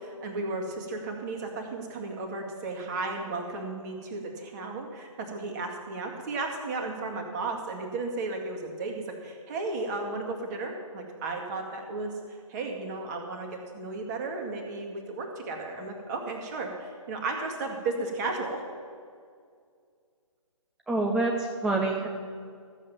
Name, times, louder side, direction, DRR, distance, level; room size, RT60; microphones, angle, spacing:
voice 1, 0.0-12.1 12.5-13.5 13.7-18.6, right 3 dB, 30° right, 2 dB, 2.1 m, -34 dB
voice 2, 20.9-22.1, right 2 dB, 5° right, 0 dB, 0.4 m, -26 dB
14.0 x 7.5 x 7.1 m, 2.2 s
figure-of-eight pair, 135°, 17 cm